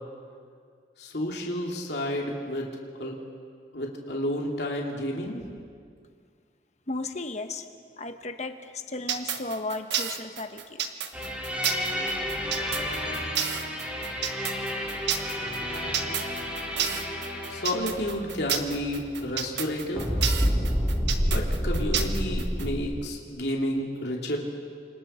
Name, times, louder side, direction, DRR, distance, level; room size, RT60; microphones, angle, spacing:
voice 1, 1.0-2.7 2.9-3.2 3.7-5.4 17.5-20.1 21.2-24.4, left 1 dB, 70° left, -1 dB, 2.8 m, -31 dB
voice 2, 6.9-7.7 8.0-10.8, left 2 dB, 40° left, 7 dB, 1.2 m, -35 dB
sound 1, 9.1-22.7, right 8 dB, 80° right, 1.2 m, -30 dB
sound 2, 11.1-19.7 20.0-22.8, equal, 10° right, 3.5 m, -30 dB
30.0 x 26.0 x 4.4 m, 2.2 s
head